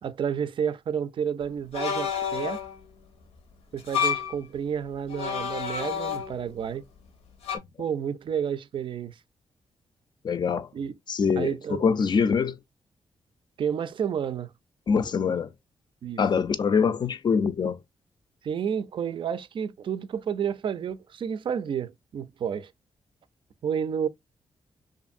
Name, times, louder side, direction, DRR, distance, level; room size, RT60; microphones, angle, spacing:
voice 1, 0.0-2.6 3.7-6.8 7.8-9.2 10.7-11.0 11.4-11.8 13.6-14.5 16.0-16.2 18.4-22.7 23.6-24.1, right 7 dB, 55° right, 0.4 m, -30 dB
sound 1, 1.7-2.8 3.8-4.4 5.1-6.6 7.4-7.6, left 7 dB, 85° left, 0.7 m, -29 dB
voice 2, 10.2-10.7 11.1-12.6 14.9-15.5 16.2-17.8, left 6 dB, 50° left, 0.4 m, -24 dB
2.5 x 2.5 x 2.5 m
cardioid pair, 65°, 10 cm